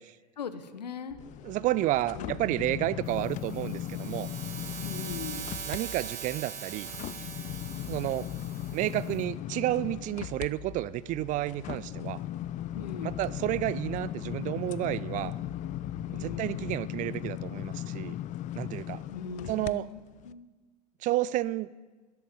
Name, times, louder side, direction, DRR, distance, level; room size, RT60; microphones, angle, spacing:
voice 1, 0.4-1.2 2.1-2.3 4.8-5.6 12.7-13.2 16.1-16.5 19.1-20.5, left 6 dB, 85° left, 12 dB, 1.2 m, -40 dB
sound 1, 1.1-17.0, left 6 dB, 65° left, 3.1 m, -49 dB
sound 2, 1.2-5.8 6.2-19.7 20.2-20.3, left 12 dB, 35° left, 0.6 m, -38 dB
voice 2, 1.4-4.3 5.7-6.9 7.9-8.3 8.7-12.2 13.0-15.3 16.1-18.2 18.6-19.0 19.5-19.9 21.0-21.7, right 15 dB, 40° right, 19 dB, 0.5 m, -31 dB
sound 3, 3.1-9.2, right 8 dB, 60° right, 2.9 m, -42 dB
13.0 x 11.5 x 9.6 m, 1.4 s
hypercardioid pair, 90°, 21 cm